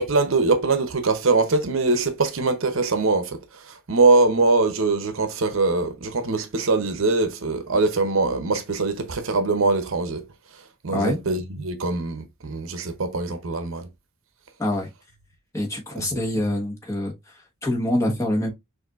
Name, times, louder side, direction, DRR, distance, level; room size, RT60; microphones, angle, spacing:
voice 1, 0.0-10.2 10.8-13.9 16.0-16.2, right 3 dB, 70° right, 0.7 m, -22 dB
voice 2, 15.5-18.5, left 1 dB, 15° left, 1.2 m, -25 dB
6.3 x 2.6 x 2.4 m
head